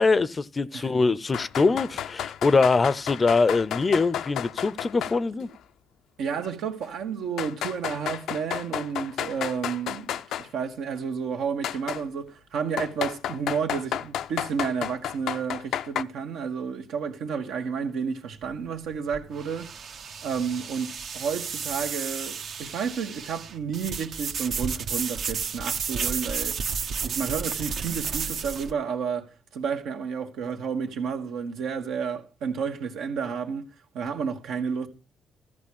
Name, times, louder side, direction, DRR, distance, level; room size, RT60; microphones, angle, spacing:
voice 1, 0.0-5.5, left 4 dB, 30° left, 0.6 m, -23 dB
sound 1, 1.3-5.2 5.5-5.6 6.4-6.5 7.4-10.5 11.6-12.0 12.8-16.0, left 10 dB, 80° left, 0.5 m, -32 dB
voice 2, 6.2-19.7 20.2-26.6 27.0-33.7 33.9-34.9, right 6 dB, 80° right, 1.8 m, -31 dB
sound 2, 18.3-28.7, right 6 dB, 65° right, 1.2 m, -32 dB
14.0 x 5.1 x 8.7 m
cardioid pair, 90°, 0 cm